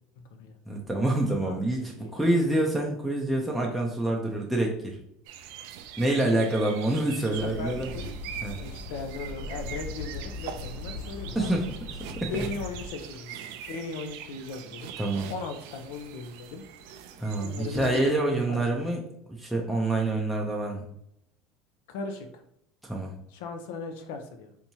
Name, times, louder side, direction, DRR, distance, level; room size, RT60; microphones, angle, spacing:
voice 1, 0.2-0.6 1.4-2.2 7.2-8.0 8.6-11.5 12.3-14.9 15.3-16.6 17.4-18.8 21.9-22.4 23.3-24.5, left 4 dB, 80° left, 6 dB, 0.6 m, -38 dB
voice 2, 0.7-5.0 6.0-7.9 8.4-8.6 11.4-11.6 12.0-12.3 15.0-15.3 17.2-19.0 19.3-20.8 22.8-23.2, right 2 dB, ahead, -2 dB, 0.5 m, -27 dB
sound 1, 5.2-18.2, right 9 dB, 75° right, 0.3 m, -43 dB
sound 2, 7.3-12.9, left 2 dB, 35° left, 1.0 m, -39 dB
3.5 x 2.9 x 2.7 m, 0.73 s
cardioid pair, 145°, 0 cm